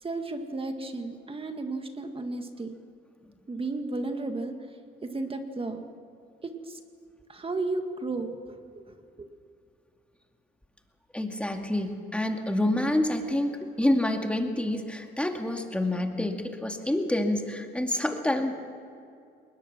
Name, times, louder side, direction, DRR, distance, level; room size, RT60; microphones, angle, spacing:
voice 1, 0.0-2.8 3.5-4.5 5.0-5.9 6.4-6.8 7.3-9.3, right 3 dB, 25° right, 6 dB, 1.9 m, -34 dB
voice 2, 11.1-18.5, left 1 dB, 5° left, 4 dB, 2.2 m, -27 dB
21.0 x 20.0 x 6.1 m, 2.4 s
cardioid pair, 90°, 20 cm